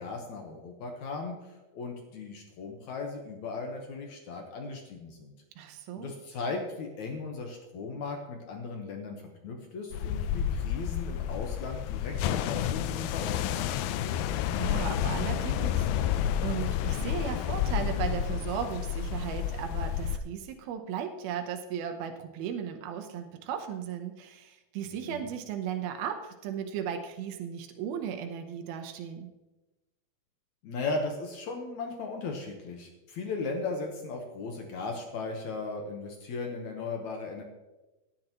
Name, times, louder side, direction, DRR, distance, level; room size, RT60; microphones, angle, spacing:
voice 1, 0.0-5.3 5.9-13.7 24.9-25.2 30.6-37.4, left 3 dB, 65° left, 2 dB, 2.1 m, -37 dB
voice 2, 5.6-6.1 14.5-29.3, right 8 dB, 80° right, 5 dB, 2.8 m, -36 dB
sound 1, 9.9-20.2, left 9 dB, 80° left, 2.3 m, -30 dB
17.5 x 10.0 x 3.0 m, 1.1 s
omnidirectional pair, 4.3 m